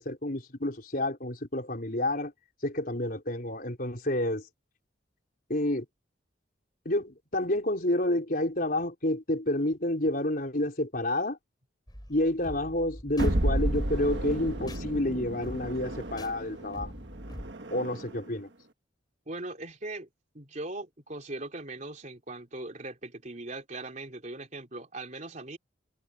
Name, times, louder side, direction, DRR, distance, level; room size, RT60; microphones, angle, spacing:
voice 1, 0.0-2.3 2.6-4.5 5.5-5.9 6.8-11.4 12.1-16.9 17.7-18.5, left 1 dB, 50° left, 4.5 m, -29 dB
sound 1, 11.9-17.5, equal, 20° left, 4.1 m, -44 dB
sound 2, 13.2-18.3, right 1 dB, 65° right, 1.6 m, -32 dB
voice 2, 19.3-20.1 20.3-25.6, right 2 dB, 40° right, 3.4 m, -40 dB
head